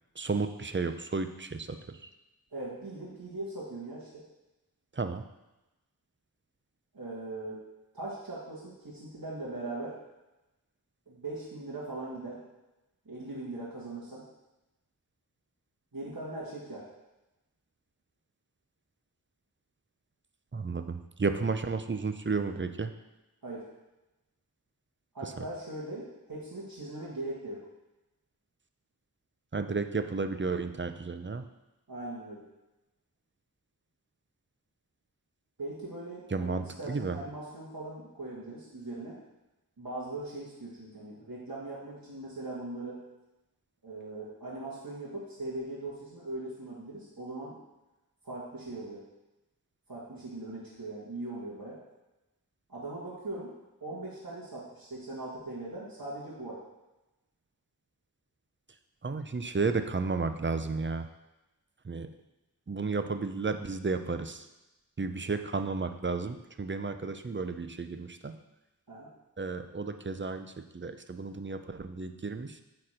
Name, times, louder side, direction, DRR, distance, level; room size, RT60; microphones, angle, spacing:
voice 1, 0.2-2.1 4.9-5.2 20.5-22.9 25.2-25.4 29.5-31.4 36.3-37.2 59.0-61.1 61.8-62.1 62.7-64.5 65.0-68.3 69.4-72.6, right 4 dB, 30° right, 8 dB, 0.6 m, -33 dB
voice 2, 2.5-4.2 6.9-7.6 7.9-10.0 11.1-12.4 13.1-14.2 15.9-16.9 23.4-23.6 25.1-27.7 31.9-32.5 35.6-39.2 39.8-43.0 43.8-47.6 48.2-49.1 49.9-51.8 52.7-53.5 53.8-56.6 68.9-69.1, right 2 dB, 65° right, -7 dB, 1.9 m, -40 dB
8.7 x 4.3 x 5.0 m, 1.0 s
wide cardioid pair, 50°, 38 cm